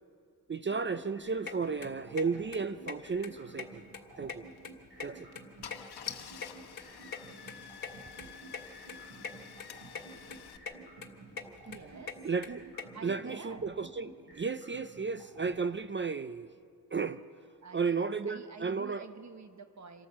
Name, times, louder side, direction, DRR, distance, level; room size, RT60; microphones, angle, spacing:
voice 1, 0.5-3.8 4.2-4.5 5.0-5.3 12.2-12.7 13.0-16.5 16.9-17.2 17.7-19.0, right 5 dB, 30° right, 0.4 m, -33 dB
sound 1, 0.7-15.5, right 3 dB, 85° right, 7.2 m, -52 dB
sound 2, 1.5-1.6 1.8-2.2 2.5-2.6 2.9-3.0 3.2-4.0 4.2-5.4 5.7-7.2 7.5-7.6 7.8-7.9 8.2-8.3 8.5-8.6 8.9-9.3 9.6-10.0 10.3-10.8 11.0-12.8, left 5 dB, 65° left, 1.5 m, -41 dB
Car / Engine starting, 4.5-4.7 5.3-5.4 5.6-10.6, left 8 dB, 90° left, 1.0 m, -47 dB
voice 2, 11.7-12.3 12.9-13.6 17.6-20.1, right 5 dB, 45° right, 0.9 m, -48 dB
26.5 x 14.0 x 7.3 m
wide cardioid pair, 130°, 38 cm